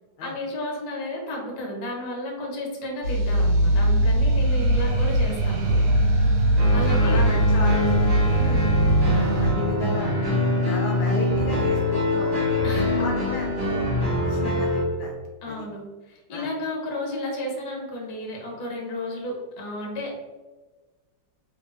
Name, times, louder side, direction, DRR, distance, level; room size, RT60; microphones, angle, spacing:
voice 1, 0.2-5.8 6.7-7.2 8.4-8.8 12.6-13.2 14.3-14.6 15.4-15.8 16.1-20.2, left 1 dB, 55° left, -1 dB, 1.3 m, -32 dB
sound 1, 3.0-9.5, equal, 75° right, 1.7 m, -21 dB
sound 2, 3.3-10.6, right 4 dB, 55° right, 1.3 m, -28 dB
sound 3, 6.6-14.8, left 1 dB, 35° right, 0.6 m, -24 dB
voice 2, 6.8-8.7 9.1-10.1 10.6-12.5 12.9-13.9 14.2-15.1 15.5-15.6 16.3-16.5, left 2 dB, 75° left, -1 dB, 1.3 m, -34 dB
3.5 x 3.4 x 2.6 m, 1.2 s
omnidirectional pair, 2.3 m